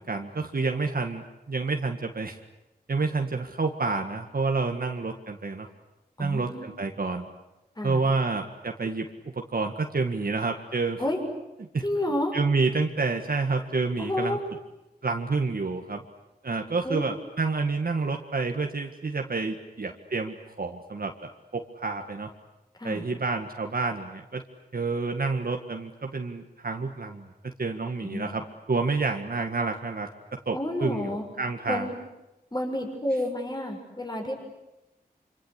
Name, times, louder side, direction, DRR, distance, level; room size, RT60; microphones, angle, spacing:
voice 1, 0.0-2.4 2.9-5.7 6.2-7.3 7.8-9.1 9.3-11.0 11.7-11.9 12.3-14.4 15.0-16.0 16.4-22.3 22.8-24.4 24.7-31.9, right 4 dB, 65° right, 3 dB, 1.9 m, -29 dB
voice 2, 6.2-6.7 7.8-8.0 11.0-11.2 11.8-12.3 14.0-14.4 16.8-17.0 22.8-23.0 28.0-28.3 30.5-31.2 31.7-31.9 32.5-34.3, left 1 dB, 25° left, 1 dB, 6.5 m, -30 dB
26.0 x 26.0 x 8.3 m, 0.97 s
wide cardioid pair, 65°, 17 cm